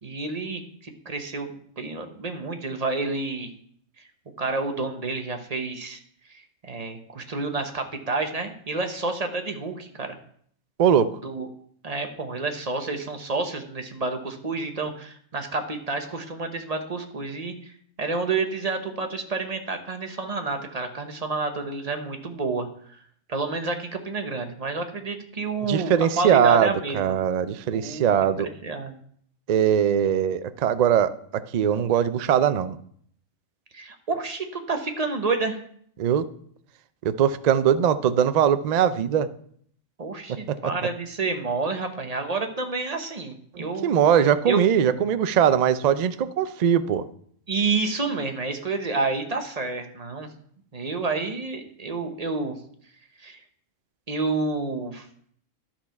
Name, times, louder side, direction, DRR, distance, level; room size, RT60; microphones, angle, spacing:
voice 1, 0.0-3.5 4.0-4.1 4.4-6.0 6.3-10.2 11.2-11.5 11.8-17.7 18.0-23.0 23.3-27.2 27.7-29.0 33.7-35.6 40.0-43.9 44.5-44.6 47.5-50.3 50.7-52.6 53.2-53.4 54.1-55.1, right 3 dB, 35° right, 5 dB, 1.0 m, -29 dB
voice 2, 10.8-11.1 25.7-28.5 29.5-32.8 36.0-36.3 37.0-39.3 40.5-40.6 43.5-47.0, right 9 dB, 75° right, 12 dB, 0.3 m, -21 dB
12.0 x 4.4 x 5.7 m, 0.63 s
omnidirectional pair, 1.3 m